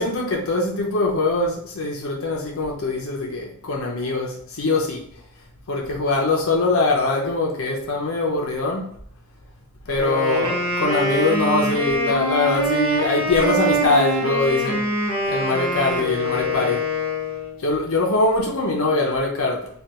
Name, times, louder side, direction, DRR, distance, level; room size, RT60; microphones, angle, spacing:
voice 1, 0.0-5.0 5.7-8.9 9.9-14.9 15.3-16.8 17.6-19.7, left 2 dB, 70° left, 0.6 m, -22 dB
Wind instrument woodwind instrument, 10.0-17.6, equal, 75° right, 0.8 m, -24 dB
3.3 x 2.3 x 2.8 m
head